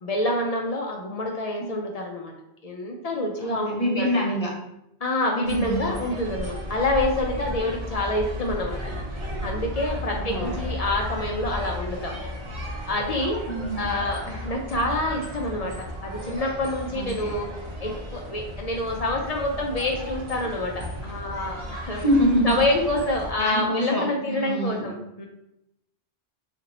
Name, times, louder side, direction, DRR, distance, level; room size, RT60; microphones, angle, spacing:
voice 1, 0.0-2.3 2.6-4.4 5.0-12.2 12.9-13.4 13.8-17.5 17.8-22.0 22.4-25.3, left 1 dB, 55° left, 1 dB, 0.4 m, -27 dB
voice 2, 3.4-4.5 5.3-5.9 10.1-10.6 13.5-13.9 16.9-17.3 21.9-22.5 23.4-24.9, equal, 40° left, -4 dB, 0.8 m, -25 dB
sound 1, 5.4-23.3, equal, 35° right, 0.5 m, -34 dB
2.7 x 2.5 x 4.0 m, 0.84 s
omnidirectional pair, 1.1 m